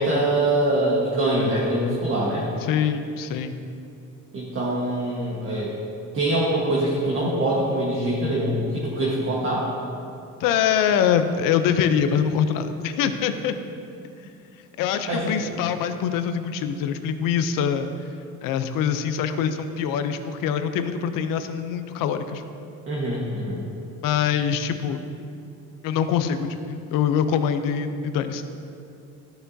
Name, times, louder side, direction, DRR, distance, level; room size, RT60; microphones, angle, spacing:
voice 1, 0.0-2.5 4.3-5.7 6.1-9.7 15.1-15.3 22.9-23.6, right 1 dB, 40° right, -5 dB, 1.4 m, -24 dB
voice 2, 2.6-3.5 10.4-13.6 14.8-17.9 18.4-22.4 24.0-25.0 25.8-28.5, left 8 dB, 80° left, 9 dB, 0.7 m, -24 dB
13.5 x 5.8 x 2.7 m, 2.6 s
cardioid pair, 105°, 33 cm